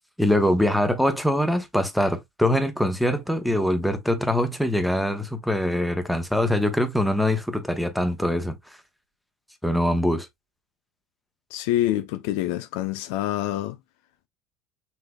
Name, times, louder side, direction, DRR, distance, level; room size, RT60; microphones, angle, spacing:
voice 1, 0.2-8.6 9.6-10.3, left 1 dB, ahead, 1.0 m, -23 dB
voice 2, 11.5-13.8, left 14 dB, 70° left, 0.4 m, -26 dB
5.9 x 3.4 x 2.3 m
hypercardioid pair, 75°, 0 cm